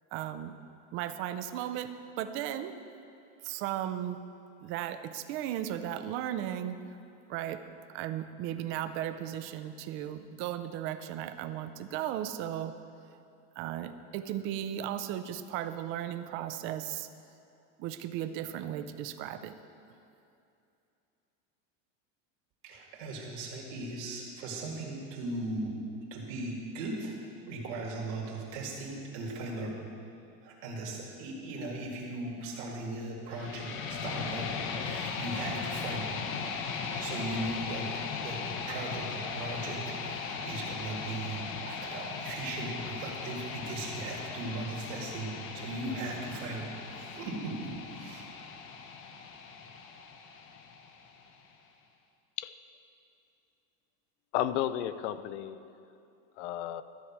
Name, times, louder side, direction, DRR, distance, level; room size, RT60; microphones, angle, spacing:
voice 1, 0.1-0.5 0.9-2.8 3.4-4.2 4.6-6.8 7.3-7.6 7.9-12.7 13.6-17.1 17.8-19.5, right 11 dB, 35° right, 11 dB, 0.4 m, -36 dB
voice 2, 22.6-25.8 26.1-27.1 27.4-29.8 30.4-36.1 36.8-38.4 38.7-48.3, right 2 dB, 70° right, -2 dB, 2.1 m, -38 dB
sound 1, 33.3-51.3, left 5 dB, 35° left, 0.8 m, -38 dB
voice 3, 54.3-55.6 56.4-56.8, left 12 dB, 80° left, 13 dB, 0.6 m, -32 dB
13.0 x 4.8 x 7.3 m, 2.6 s
cardioid pair, 170°, 35 cm